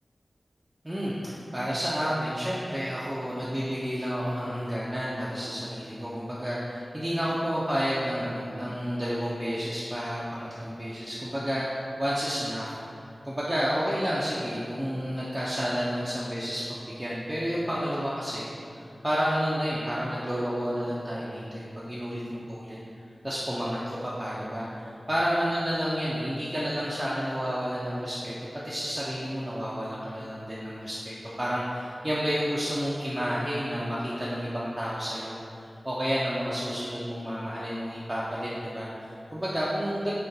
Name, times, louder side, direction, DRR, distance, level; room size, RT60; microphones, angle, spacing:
voice 1, 0.8-18.5 18.8-22.8 23.2-24.7 25.1-28.3 28.6-35.4 35.8-40.1, equal, 20° right, -8 dB, 0.4 m, -30 dB
3.6 x 2.2 x 2.6 m, 2.6 s
wide cardioid pair, 45°, 0 cm